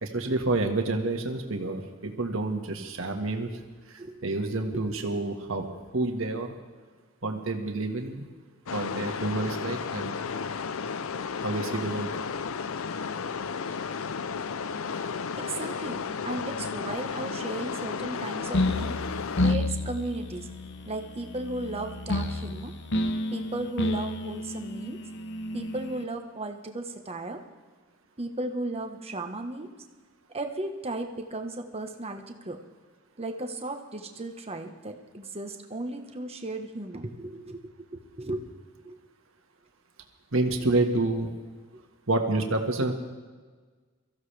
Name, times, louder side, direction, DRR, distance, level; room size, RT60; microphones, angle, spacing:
voice 1, 0.0-3.5 3.9-5.7 5.9-6.5 7.2-8.3 8.7-10.3 11.4-12.1 40.3-41.3 42.1-42.9, right 2 dB, 75° right, 3 dB, 1.7 m, -28 dB
voice 2, 4.7-5.4 14.8-19.0 19.4-20.5 20.8-22.7 23.3-25.0 25.5-27.4 28.2-29.7 30.3-32.6 33.2-38.4 38.8-39.0 41.7-41.8, right 2 dB, 30° right, 5 dB, 1.3 m, -35 dB
sound 1, 8.7-19.5, left 5 dB, 90° left, 0.6 m, -33 dB
sound 2, 18.5-26.0, left 1 dB, 60° left, 0.9 m, -30 dB
23.5 x 15.0 x 3.4 m, 1.4 s
head